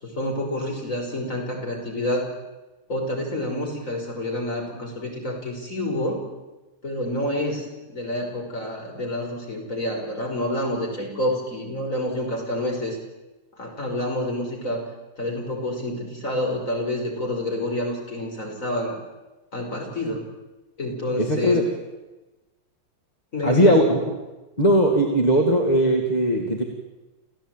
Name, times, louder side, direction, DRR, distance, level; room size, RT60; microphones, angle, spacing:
voice 1, 0.0-2.2 2.9-6.2 6.8-13.0 13.6-14.8 15.2-19.0 19.5-20.3 20.8-21.6 23.3-23.8, left 1 dB, 40° left, 1 dB, 6.0 m, -28 dB
voice 2, 21.2-21.6 23.4-24.1 24.6-26.6, equal, 20° left, 1 dB, 2.6 m, -19 dB
28.0 x 16.0 x 9.3 m, 1.1 s
omnidirectional pair, 2.1 m